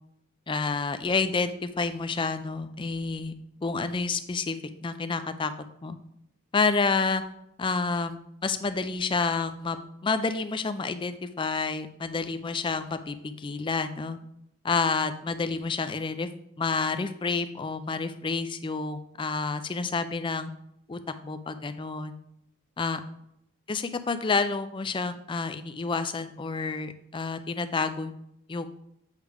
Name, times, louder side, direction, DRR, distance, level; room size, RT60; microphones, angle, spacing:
voice 1, 0.5-3.3 3.6-5.5 5.8-6.0 6.5-7.2 7.6-14.2 14.6-16.3 16.6-20.5 20.9-22.2 22.8-23.0 23.7-28.1 28.5-28.7, left 4 dB, 20° left, 10 dB, 0.3 m, -29 dB
8.2 x 3.4 x 4.7 m, 0.76 s
head